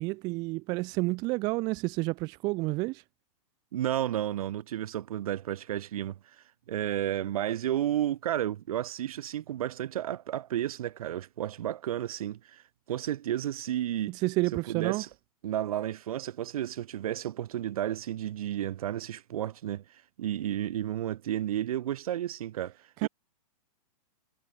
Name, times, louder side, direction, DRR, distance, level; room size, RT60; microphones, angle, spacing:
voice 1, 0.0-3.0 14.1-15.0 23.0-23.1, right 23 dB, 20° right, 0.4 m, -30 dB
voice 2, 3.7-6.2 6.7-12.6 12.9-14.2 14.7-15.1 15.4-19.8 20.2-22.7 23.0-23.1, right 11 dB, 65° right, 2.0 m, -32 dB
hypercardioid pair, 160°, 20 cm